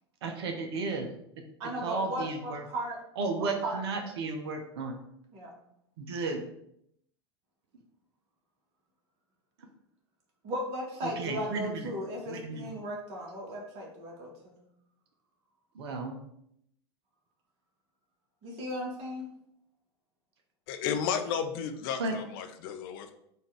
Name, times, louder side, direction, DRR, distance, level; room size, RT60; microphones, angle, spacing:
voice 1, 0.2-1.1 1.4-2.7 3.2-5.0 6.0-6.4 9.6-9.7 11.0-11.9 12.3-12.7 15.7-16.2 22.0-22.2, right 3 dB, 65° right, 4 dB, 0.7 m, -34 dB
voice 2, 1.6-3.0 3.4-3.8 5.3-5.5 10.4-14.6 18.4-19.3, equal, 50° right, -1 dB, 1.4 m, -36 dB
voice 3, 20.7-23.1, left 7 dB, 55° left, 7 dB, 0.5 m, -33 dB
4.0 x 2.5 x 4.5 m, 0.76 s
figure-of-eight pair, 85°, 14 cm